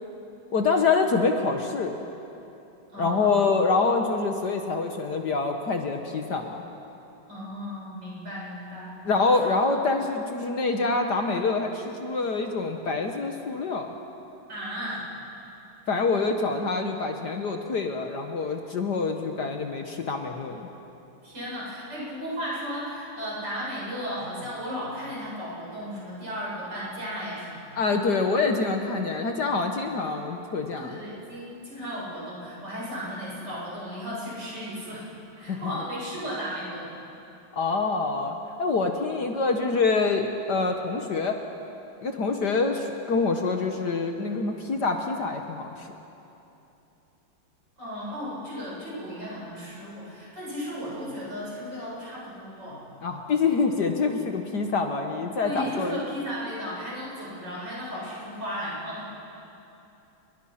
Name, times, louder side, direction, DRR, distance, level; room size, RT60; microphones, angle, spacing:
voice 1, 0.5-2.0 3.0-6.6 9.1-13.9 15.9-20.7 27.8-31.0 35.5-35.6 37.5-41.4 42.0-45.9 53.0-56.0, left 4 dB, 55° left, 4 dB, 1.8 m, -26 dB
voice 2, 2.9-3.4 7.3-8.9 9.4-9.5 14.5-15.1 21.2-27.8 30.8-35.1 35.4-36.9 47.8-52.8 55.4-59.1, equal, 55° right, -6 dB, 8.4 m, -35 dB
29.0 x 22.5 x 5.9 m, 2.9 s
omnidirectional pair, 2.3 m